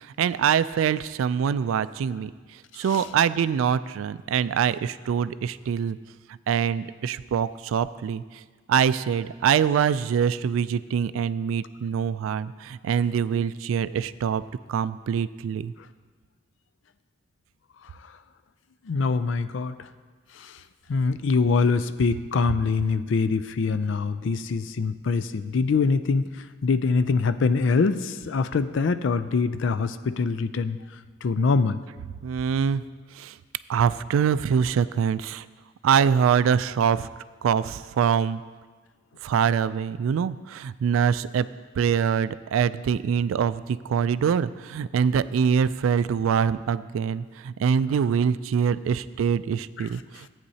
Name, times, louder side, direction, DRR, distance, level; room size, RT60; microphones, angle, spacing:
voice 1, 0.0-6.0 6.3-8.4 8.7-14.4 14.7-15.7 32.2-32.8 33.1-33.4 33.7-35.5 35.8-37.1 37.4-38.4 39.2-41.5 41.8-50.3, right 7 dB, 90° right, 16 dB, 0.3 m, -24 dB
voice 2, 18.8-19.9 20.3-20.6 20.9-30.8 31.2-31.8 49.8-49.9, left 4 dB, 70° left, 12 dB, 0.4 m, -24 dB
14.5 x 8.8 x 2.8 m, 1.5 s
head